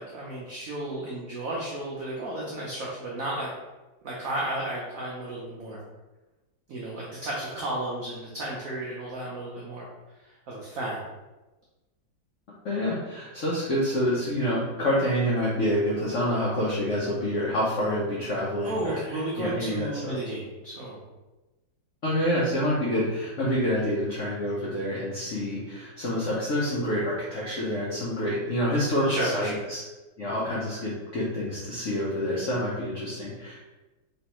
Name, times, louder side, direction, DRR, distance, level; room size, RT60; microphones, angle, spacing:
voice 1, 0.0-3.5 4.0-5.8 6.7-9.9 10.5-11.0 18.6-21.0 29.0-29.6, right 1 dB, 85° right, -4 dB, 0.7 m, -33 dB
voice 2, 12.6-20.1 22.0-29.8 30.2-33.6, equal, 75° left, -7 dB, 0.7 m, -27 dB
3.2 x 3.1 x 2.9 m, 1.1 s
omnidirectional pair, 2.2 m